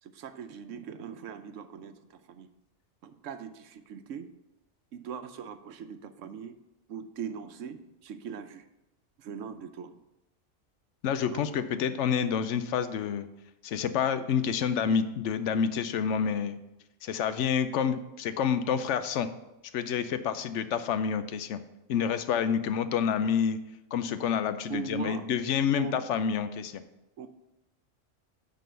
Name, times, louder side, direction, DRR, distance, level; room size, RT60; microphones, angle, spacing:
voice 1, 0.0-2.5 3.0-4.3 4.9-6.5 6.9-8.6 9.2-10.0 11.3-11.5 24.7-25.2 25.7-26.0 27.2-27.3, right 7 dB, 85° right, 9 dB, 1.0 m, -40 dB
voice 2, 11.0-13.3 13.6-16.6 17.0-19.3 19.7-21.6 21.9-23.6 23.9-26.8, left 7 dB, 75° left, 11 dB, 0.9 m, -28 dB
9.2 x 3.9 x 6.7 m, 0.93 s
omnidirectional pair, 1.3 m